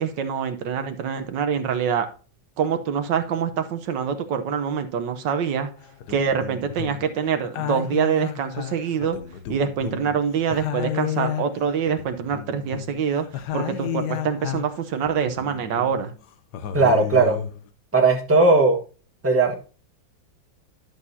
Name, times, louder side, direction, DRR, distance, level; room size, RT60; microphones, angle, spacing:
voice 1, 0.0-2.1 2.6-5.7 6.1-9.2 9.5-13.3 13.5-16.1, right 7 dB, 75° right, 8 dB, 1.5 m, -25 dB
sound 1, 5.8-7.2 7.4-10.2 10.5-14.8 15.0-16.1 16.5-17.7, left 10 dB, 65° left, 1.2 m, -32 dB
voice 2, 16.7-17.4 17.9-18.8 19.2-19.5, right 3 dB, 10° right, 2 dB, 1.3 m, -17 dB
11.0 x 6.5 x 2.7 m, 0.35 s
omnidirectional pair, 2.0 m